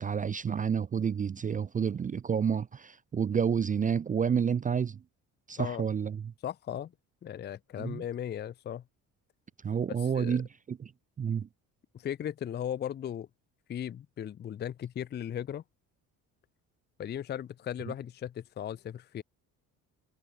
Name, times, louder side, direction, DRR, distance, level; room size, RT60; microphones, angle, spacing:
voice 1, 0.0-5.0 5.5-6.3 7.8-8.0 9.6-10.9 11.2-11.5, right 7 dB, 25° right, 0.5 m, -29 dB
voice 2, 6.4-6.9 7.2-8.8 10.0-10.4 11.9-13.3 13.7-15.6 17.0-19.2, left 10 dB, 30° left, 0.5 m, -37 dB
cardioid pair, 110°, 33 cm